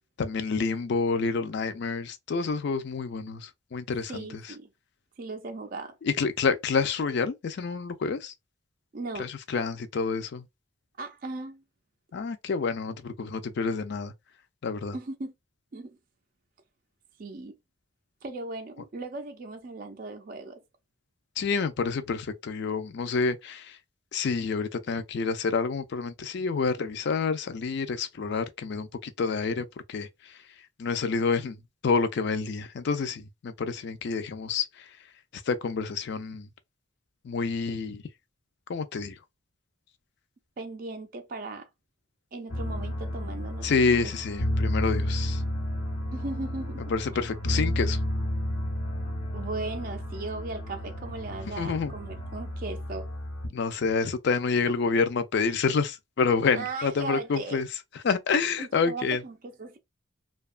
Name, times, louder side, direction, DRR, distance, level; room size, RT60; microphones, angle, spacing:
voice 1, 0.2-4.3 6.0-8.3 9.2-10.4 12.1-14.1 14.6-14.9 21.4-23.8 24.1-30.4 30.8-31.6 31.8-34.9 35.5-36.5 37.2-38.0 38.7-39.1 43.6-45.4 46.9-48.0 51.6-51.9 53.5-57.7 58.0-59.2, left 5 dB, 55° left, 0.4 m, -28 dB
voice 2, 4.1-4.7 5.2-6.0 8.9-9.3 11.0-11.6 14.9-15.3 15.7-16.0 17.2-17.5 18.2-20.6 40.6-41.7 42.3-44.1 46.1-46.9 49.3-53.1 56.5-57.6 58.6-59.8, right 3 dB, 45° right, 0.4 m, -37 dB
sound 1, 42.5-53.5, equal, 80° left, 1.0 m, -31 dB
2.7 x 2.3 x 2.4 m
head